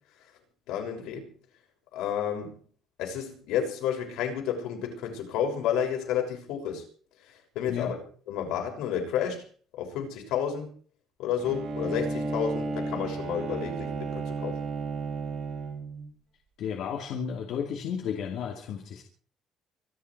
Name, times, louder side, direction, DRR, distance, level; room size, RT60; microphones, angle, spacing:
voice 1, 0.7-1.3 1.9-2.5 3.0-6.8 7.5-8.0 8.3-9.4 9.7-10.7 11.2-14.6, left 8 dB, 75° left, 6.4 m, -31 dB
Bowed string instrument, 11.4-16.1, right 3 dB, 45° right, 5.6 m, -33 dB
voice 2, 16.6-19.0, left 7 dB, 55° left, 2.6 m, -33 dB
25.5 x 11.5 x 4.7 m
cardioid pair, 170°, 0 cm